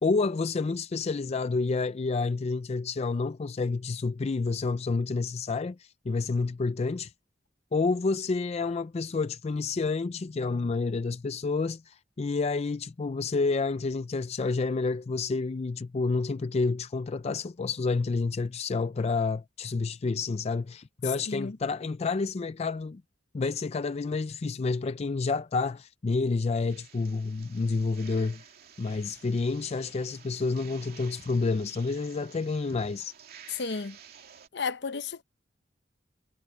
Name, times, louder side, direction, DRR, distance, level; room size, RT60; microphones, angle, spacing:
voice 1, 0.0-7.1 7.7-23.0 23.3-28.4 28.8-33.1, left 4 dB, 35° left, 0.4 m, -29 dB
sound 1, 26.7-34.5, right 8 dB, 55° right, 2.9 m, -52 dB
voice 2, 33.5-34.0 34.5-35.2, left 5 dB, 65° left, 0.9 m, -33 dB
head